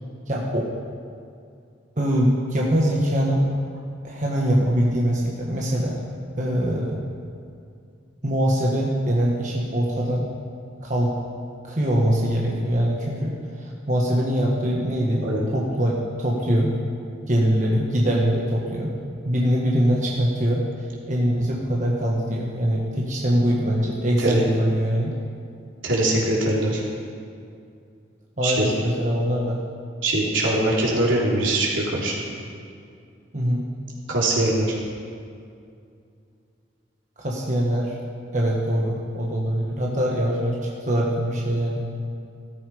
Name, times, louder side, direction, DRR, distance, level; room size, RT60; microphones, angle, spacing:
voice 1, 0.3-0.7 2.0-3.5 4.0-6.0 6.3-7.0 8.2-10.3 10.8-11.1 11.6-15.3 15.5-16.7 17.3-18.9 19.2-20.6 21.1-25.1 28.4-29.6 33.3-33.7 37.2-38.0 38.3-41.8, equal, 40° right, -3 dB, 1.5 m, -23 dB
voice 2, 25.8-26.8 28.4-28.6 30.0-32.1 34.1-34.8, right 1 dB, 85° right, -4 dB, 3.6 m, -22 dB
15.0 x 13.5 x 5.0 m, 2.4 s
head